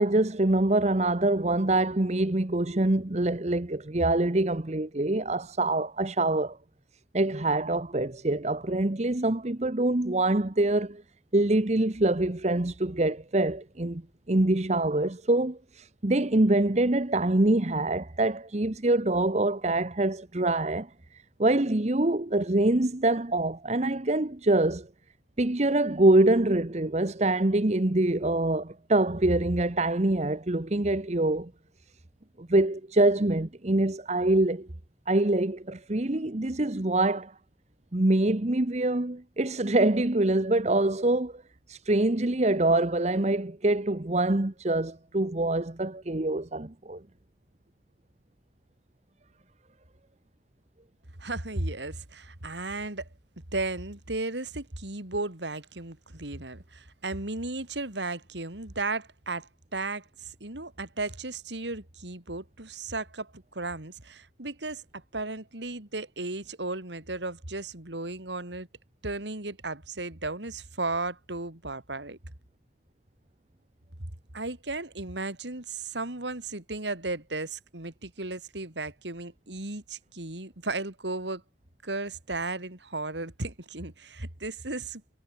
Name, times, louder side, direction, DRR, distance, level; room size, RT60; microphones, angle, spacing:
voice 1, 0.0-6.6 7.1-11.0 11.3-14.0 14.3-24.9 25.4-31.5 32.4-34.7 35.1-37.3 37.9-41.4 41.7-47.0, right 2 dB, 40° right, 1.1 m, -25 dB
voice 2, 51.2-53.1 53.5-68.7 69.0-72.2 74.3-81.4 81.8-85.2, right 2 dB, 75° right, 3.4 m, -35 dB
head